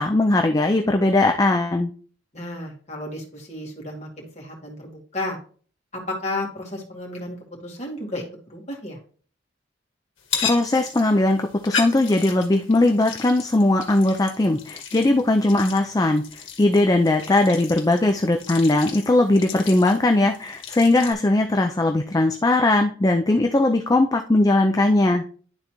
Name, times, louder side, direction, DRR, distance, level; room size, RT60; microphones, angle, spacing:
voice 1, 0.0-1.9 10.4-25.2, left 2 dB, 20° left, 4 dB, 0.4 m, -19 dB
voice 2, 2.3-5.4 5.9-9.0, left 1 dB, 35° left, -1 dB, 2.2 m, -33 dB
sound 1, 10.2-21.1, left 6 dB, 80° left, 1.7 m, -35 dB
11.5 x 3.9 x 3.0 m, 0.42 s
head